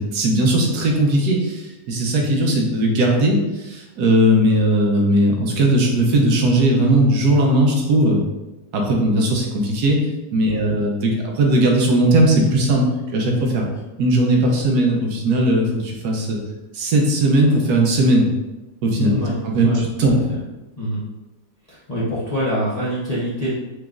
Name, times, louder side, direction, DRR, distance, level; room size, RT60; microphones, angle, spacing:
voice 1, 0.0-8.2 8.7-10.0 10.3-12.9 13.1-13.6 14.0-16.4 16.7-18.3 18.8-19.2 19.4-20.2, right 1 dB, 70° right, 0 dB, 1.2 m, -18 dB
voice 2, 18.9-19.4 19.6-19.9 20.3-20.4 20.8-21.0 21.7-23.5, equal, 40° left, -8 dB, 0.5 m, -25 dB
4.9 x 3.5 x 2.4 m, 1.0 s
omnidirectional pair, 1.9 m